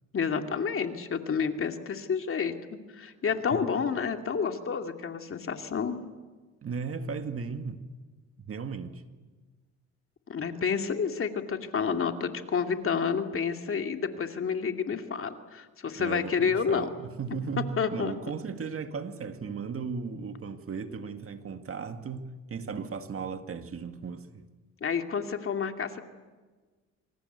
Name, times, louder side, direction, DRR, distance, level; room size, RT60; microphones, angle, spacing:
voice 1, 0.1-6.0 10.3-16.9 17.8-18.1 24.8-26.0, left 6 dB, 45° left, 2.6 m, -29 dB
voice 2, 6.6-7.8 8.5-9.0 16.0-24.4, right 5 dB, 50° right, 2.1 m, -36 dB
27.0 x 26.0 x 8.2 m
cardioid pair, 90°, 30 cm